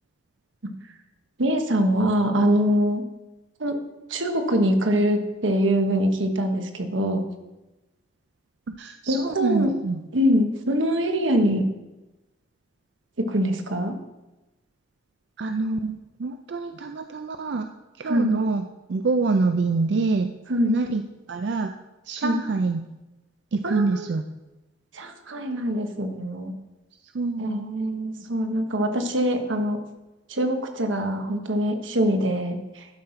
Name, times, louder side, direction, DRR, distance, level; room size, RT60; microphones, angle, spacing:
voice 1, 1.4-3.0 3.6-3.8 4.1-7.2 9.1-9.7 10.1-11.6 13.2-14.0 18.0-18.3 20.5-20.7 22.2-22.4 23.6-24.1 24.9-26.5 27.4-29.8 30.3-32.9, equal, 90° right, 5 dB, 1.2 m, -23 dB
voice 2, 8.7-10.0 15.4-17.7 18.0-18.6 18.9-20.3 20.6-21.0 21.3-21.7 22.1-22.8 23.5-24.2 27.1-27.6, right 3 dB, 65° right, 7 dB, 0.4 m, -25 dB
11.5 x 4.5 x 5.7 m, 1.0 s
head